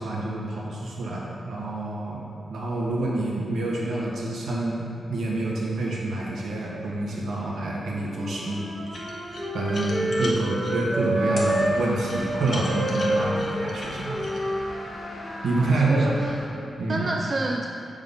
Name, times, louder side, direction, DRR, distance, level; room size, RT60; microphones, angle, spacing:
voice 1, 0.0-8.7 9.5-14.2 15.4-16.1 16.8-17.1, right 2 dB, 75° right, -4 dB, 1.3 m, -27 dB
Wind instrument woodwind instrument, 7.9-11.8 12.1-16.4, right 1 dB, ahead, 1.5 m, -29 dB
sound 1, 8.8-10.7 11.4-11.5 12.0-14.4, left 1 dB, 40° left, 1.0 m, -38 dB
sound 2, 11.2-16.5, left 1 dB, 60° left, 1.0 m, -40 dB
voice 2, 15.6-17.7, right 2 dB, 30° right, 0 dB, 0.4 m, -30 dB
7.1 x 3.8 x 5.5 m, 2.7 s
wide cardioid pair, 155°, 0 cm